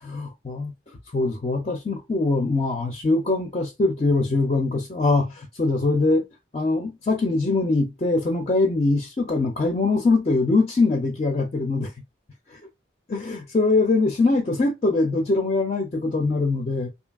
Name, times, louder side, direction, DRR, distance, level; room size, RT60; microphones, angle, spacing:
voice 1, 0.0-0.7 1.1-6.2 6.5-11.9 13.1-16.9, left 3 dB, 35° left, 0.4 m, -22 dB
2.7 x 2.6 x 2.3 m
head